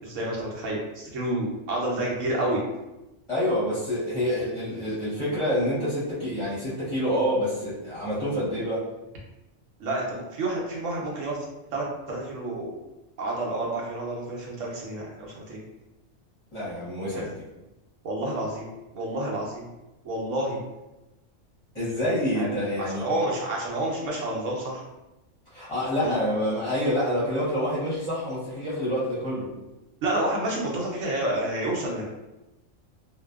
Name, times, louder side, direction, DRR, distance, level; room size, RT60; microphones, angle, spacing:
voice 1, 0.0-2.6 9.8-11.4 11.7-12.7 13.2-15.6 17.1-17.2 18.0-18.7 18.9-19.7 20.0-20.6 22.4-22.5 22.8-24.8 26.0-26.1 30.0-32.1, right 1 dB, 75° right, -2 dB, 1.0 m, -29 dB
voice 2, 3.3-8.9 16.5-17.4 21.7-23.1 25.5-29.5, equal, 30° left, -11 dB, 0.7 m, -27 dB
2.6 x 2.2 x 2.3 m, 1.0 s
omnidirectional pair, 1.3 m